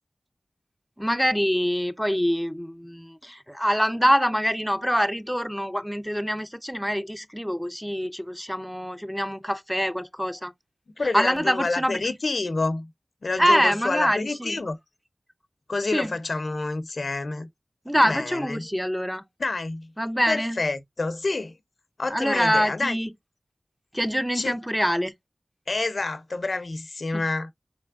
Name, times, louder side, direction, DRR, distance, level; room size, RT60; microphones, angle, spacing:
voice 1, 1.0-10.5 11.1-12.0 13.4-14.6 15.9-16.1 17.9-19.2 20.0-20.6 22.1-23.1 23.9-25.1 27.1-27.2, equal, ahead, 0.4 m, -25 dB
voice 2, 11.0-12.9 13.2-14.8 15.7-17.5 18.0-18.6 19.4-19.9 20.3-21.6 22.0-23.0 24.3-24.6 25.7-27.5, left 3 dB, 70° left, 0.5 m, -28 dB
3.9 x 3.3 x 2.3 m
wide cardioid pair, 60°, 0 cm